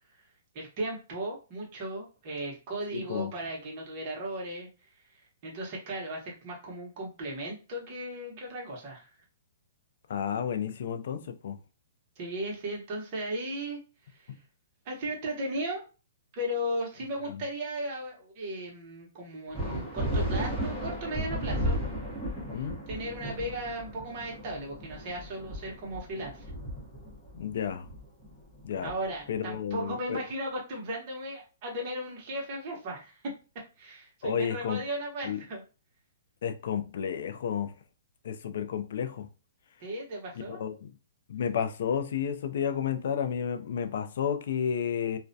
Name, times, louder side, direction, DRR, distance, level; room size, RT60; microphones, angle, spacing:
voice 1, 0.5-4.7 5.1-9.1 12.2-13.8 14.1-14.3 14.8-15.8 16.3-21.8 22.5-26.5 28.8-33.2 33.8-35.6 39.8-40.6, right 1 dB, 35° right, 0.9 m, -36 dB
voice 2, 2.9-3.3 10.1-11.6 14.3-14.4 17.3-17.4 22.5-22.8 27.3-27.9 28.6-28.9 29.3-30.2 34.2-34.8 35.2-35.4 36.4-37.7 38.2-39.3 40.5-40.9 41.3-45.2, left 8 dB, 60° left, 0.4 m, -31 dB
sound 1, 19.5-29.5, equal, ahead, 0.8 m, -34 dB
2.3 x 2.1 x 2.6 m
hypercardioid pair, 160°, 0 cm